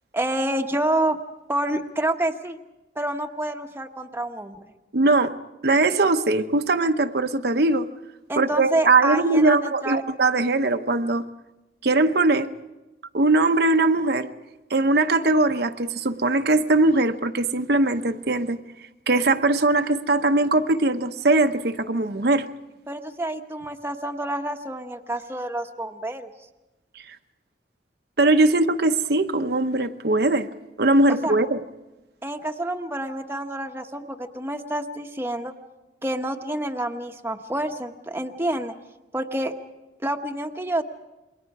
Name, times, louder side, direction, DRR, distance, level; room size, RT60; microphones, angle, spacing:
voice 1, 0.1-1.2 1.5-2.6 3.0-4.6 8.3-10.0 22.9-26.3 31.1-31.4 32.2-35.5 36.0-38.7 39.1-39.5 40.0-40.8, right 1 dB, 15° right, 4 dB, 1.0 m, -28 dB
voice 2, 4.9-5.3 5.6-7.9 8.4-11.2 11.8-12.5 13.1-14.3 14.7-18.6 19.1-22.5 27.0-27.2 28.2-30.5 30.8-31.6, right 2 dB, 60° right, 7 dB, 0.9 m, -20 dB
28.0 x 22.0 x 4.8 m, 1.0 s
head